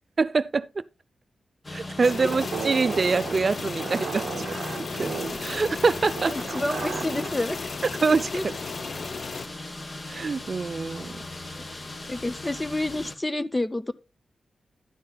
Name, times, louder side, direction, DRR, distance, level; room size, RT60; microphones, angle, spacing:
voice 1, 0.2-0.7 1.7-4.6 4.9-6.3 8.0-8.5 10.1-11.2, right 4 dB, 45° right, 0.5 m, -25 dB
sound 1, 1.6-13.2, left 2 dB, 35° left, 1.2 m, -38 dB
sound 2, 2.0-9.5, left 4 dB, 55° left, 0.6 m, -35 dB
sound 3, 2.3-7.4, right 6 dB, 90° right, 0.6 m, -35 dB
voice 2, 6.3-7.6 8.3-8.4 11.5-11.6 12.1-13.9, left 1 dB, 15° left, 0.6 m, -29 dB
11.5 x 9.9 x 2.3 m
wide cardioid pair, 115°, 0 cm